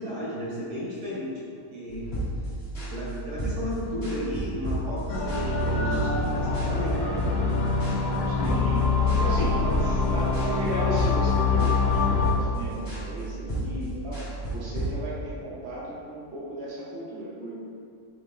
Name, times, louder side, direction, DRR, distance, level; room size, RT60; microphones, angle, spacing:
voice 1, 0.0-1.4 1.7-2.1 2.9-8.3 9.1-9.2 9.5-9.8, left 1 dB, 90° right, -7 dB, 1.5 m, -34 dB
sound 1, 1.9-14.9, right 1 dB, 45° left, 1.7 m, -33 dB
sound 2, 5.1-12.3, left 4 dB, 85° left, 1.2 m, -25 dB
voice 2, 8.2-9.5 9.8-14.3 14.5-17.5, right 2 dB, 50° right, -7 dB, 1.0 m, -35 dB
4.8 x 3.4 x 2.5 m, 2.4 s
omnidirectional pair, 1.6 m